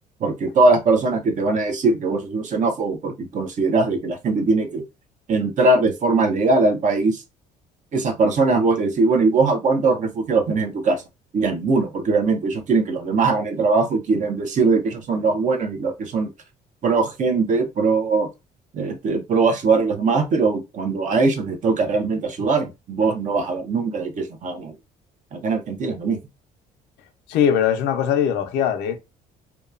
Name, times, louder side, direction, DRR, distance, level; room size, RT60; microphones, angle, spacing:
voice 1, 0.2-4.8 5.3-7.2 7.9-11.0 11.3-16.3 16.8-18.3 18.7-24.7 25.3-26.2, right 3 dB, 50° right, 0.8 m, -21 dB
voice 2, 27.3-29.0, left 8 dB, 90° left, 0.6 m, -20 dB
2.9 x 2.3 x 2.4 m
cardioid pair, 110°, 17 cm